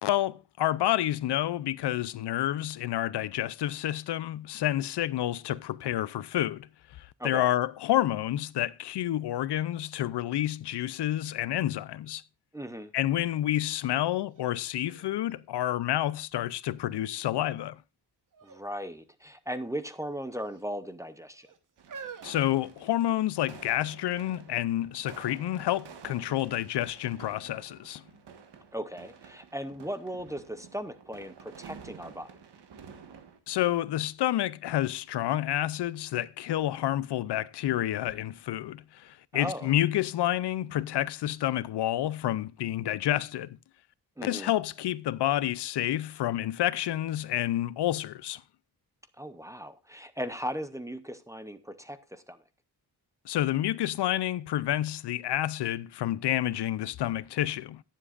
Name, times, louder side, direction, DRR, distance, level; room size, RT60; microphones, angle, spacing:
voice 1, 0.0-6.7 7.0-12.2 12.9-17.8 22.2-28.0 33.5-43.6 44.2-48.4 53.2-57.8, left 13 dB, 80° left, 0.6 m, -29 dB
voice 2, 12.5-12.9 18.4-21.5 28.7-32.3 39.3-39.7 44.2-44.5 49.2-52.4, equal, 10° right, 0.6 m, -37 dB
sound 1, 14.3-14.4 14.9-16.4 17.0-17.5 18.3-18.7 19.0-19.1 20.0-20.6 21.3-23.4 24.1-24.2, right 6 dB, 50° right, 1.2 m, -48 dB
sound 2, 21.8-33.4, right 6 dB, 85° right, 1.5 m, -51 dB
18.0 x 7.4 x 2.4 m
wide cardioid pair, 180°, 40 cm